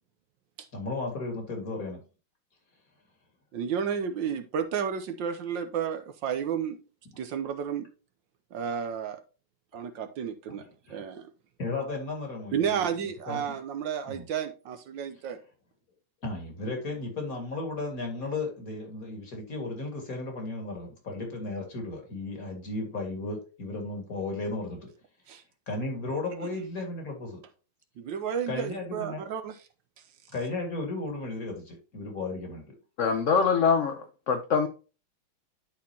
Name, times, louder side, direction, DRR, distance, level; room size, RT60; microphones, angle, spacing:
voice 1, 0.7-2.0 10.6-11.0 11.6-12.9 13.3-13.6 14.1-14.2 16.2-24.9 25.7-27.4 28.5-29.2 30.3-32.7, left 2 dB, 45° left, 2.4 m, -35 dB
voice 2, 3.5-6.8 7.2-7.9 8.5-9.2 9.7-10.6 10.9-11.3 12.5-15.4 25.3-25.4 26.4-26.5 28.0-29.6, right 7 dB, 70° right, 1.4 m, -32 dB
voice 3, 33.0-34.7, left 5 dB, 65° left, 0.7 m, -24 dB
11.5 x 4.3 x 2.8 m
omnidirectional pair, 2.2 m